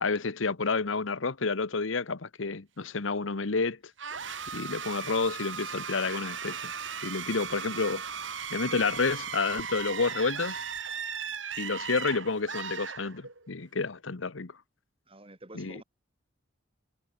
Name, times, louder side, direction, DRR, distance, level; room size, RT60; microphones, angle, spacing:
voice 1, 0.0-3.8 4.5-6.7 7.0-8.0 8.5-10.6 11.6-14.5 15.5-15.8, left 4 dB, 85° left, 1.1 m, -30 dB
sound 1, 4.0-13.5, right 7 dB, 75° right, 5.8 m, -37 dB
voice 2, 15.1-15.8, right 1 dB, 30° right, 5.9 m, -49 dB
head